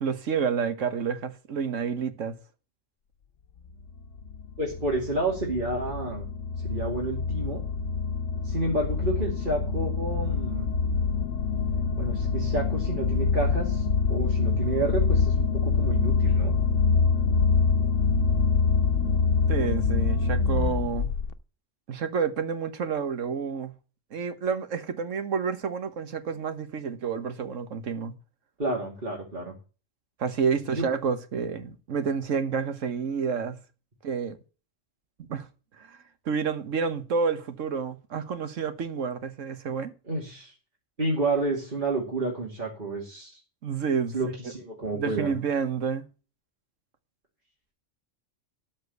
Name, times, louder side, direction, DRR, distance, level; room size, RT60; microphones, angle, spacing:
voice 1, 0.0-2.4 19.5-21.1 21.9-23.7 24.1-28.1 30.2-33.6 34.0-34.4 35.2-35.5 35.8-36.0 36.2-39.9 43.6-44.2 44.9-46.1, right 6 dB, 90° right, 1.5 m, -29 dB
sound 1, 3.8-21.3, left 5 dB, 80° left, 1.1 m, -25 dB
voice 2, 4.6-6.3 6.6-7.6 8.4-10.7 12.0-16.5 28.6-29.5 30.6-30.8 40.1-40.5 41.0-43.4 44.1-45.3, right 2 dB, 40° right, 2.5 m, -30 dB
13.0 x 4.4 x 8.1 m
omnidirectional pair, 1.3 m